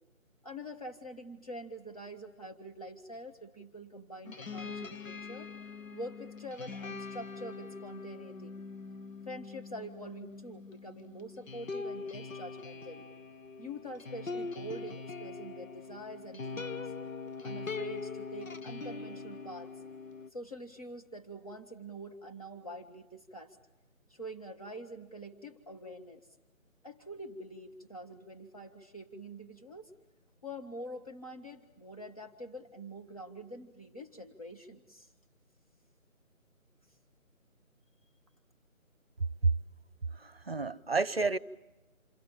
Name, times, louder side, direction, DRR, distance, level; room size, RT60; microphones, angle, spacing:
voice 1, 0.4-5.5 5.9-8.5 9.3-13.1 13.6-16.9 17.4-19.7 20.3-23.6 24.1-26.3 26.8-29.9 30.4-35.1, right 1 dB, 25° left, 1.6 m, -45 dB
sound 1, 4.2-20.3, left 4 dB, 70° left, 1.2 m, -42 dB
voice 2, 40.1-41.4, right 4 dB, 45° right, 0.9 m, -29 dB
28.5 x 22.5 x 7.4 m
figure-of-eight pair, 175°, 42 cm